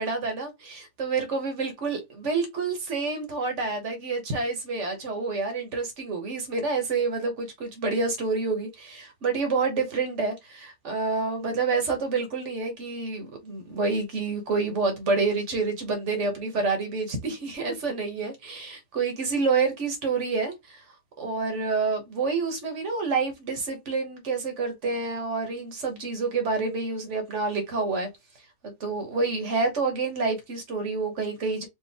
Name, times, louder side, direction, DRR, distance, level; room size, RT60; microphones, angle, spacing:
voice 1, 0.0-20.8 21.2-28.1 28.6-31.7, right 4 dB, 75° right, 1.5 m, -28 dB
4.6 x 2.4 x 3.5 m
omnidirectional pair, 1.2 m